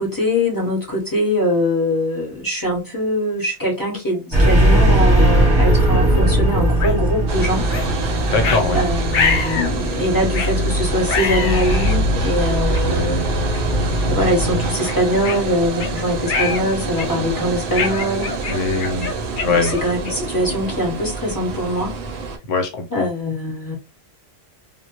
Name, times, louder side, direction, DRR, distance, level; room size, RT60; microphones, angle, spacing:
voice 1, 0.0-7.6 8.7-13.3 14.1-18.3 19.4-22.0 22.9-23.7, equal, 20° left, 0.8 m, -22 dB
sound 1, 4.3-14.7, equal, 25° right, 0.7 m, -19 dB
sound 2, 6.8-7.0 7.7-7.9 8.4-8.6 9.1-9.7 10.3-10.6 11.1-12.0 12.7-12.8 13.5-13.7 14.2-14.3 14.9-15.9 16.3-16.6 17.0-17.3 17.8-20.3, left 5 dB, 55° left, 0.6 m, -25 dB
sound 3, 7.3-22.4, right 4 dB, 60° right, 0.6 m, -27 dB
voice 2, 8.2-8.8 18.5-19.1 19.4-19.7 22.5-23.1, left 4 dB, 80° left, 1.0 m, -21 dB
2.2 x 2.0 x 2.8 m
omnidirectional pair, 1.3 m